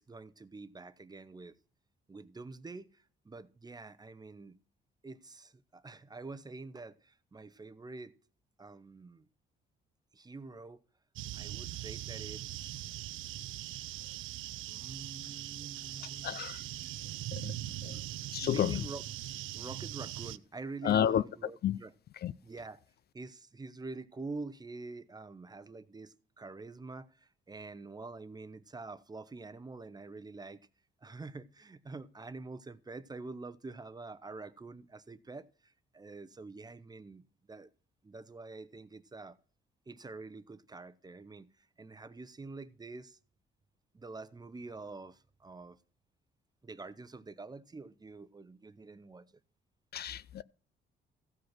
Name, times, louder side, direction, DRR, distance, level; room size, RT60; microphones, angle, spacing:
voice 1, 0.0-1.6 2.1-4.6 5.0-8.1 8.6-9.3 10.1-10.8 11.3-12.9 14.7-16.4 17.9-18.0 18.4-19.0 19.5-21.9 22.4-22.8 23.1-30.6 31.0-37.7 38.0-39.4 39.9-43.2 43.9-45.8 46.6-49.3, right 3 dB, 20° right, 0.8 m, -46 dB
sound 1, 11.2-20.4, right 14 dB, 80° right, 0.5 m, -41 dB
voice 2, 16.0-16.6 17.3-17.5 17.8-18.0 18.3-18.8 20.8-21.2 21.6-21.8 22.2-22.3 49.9-50.4, left 10 dB, 55° left, 0.4 m, -31 dB
15.0 x 5.1 x 5.9 m
cardioid pair, 90°, 20 cm